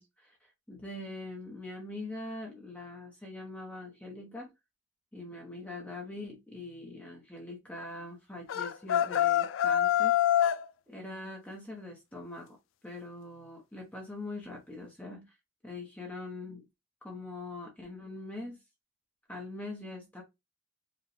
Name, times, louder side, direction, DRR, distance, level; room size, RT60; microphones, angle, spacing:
voice 1, 0.0-4.5 5.1-10.1 10.9-12.6 12.8-15.4 15.6-16.7 17.0-18.6 19.3-20.2, left 2 dB, 5° left, 0.9 m, -43 dB
sound 1, 8.5-10.6, left 11 dB, 80° left, 0.4 m, -25 dB
4.8 x 2.4 x 3.3 m
head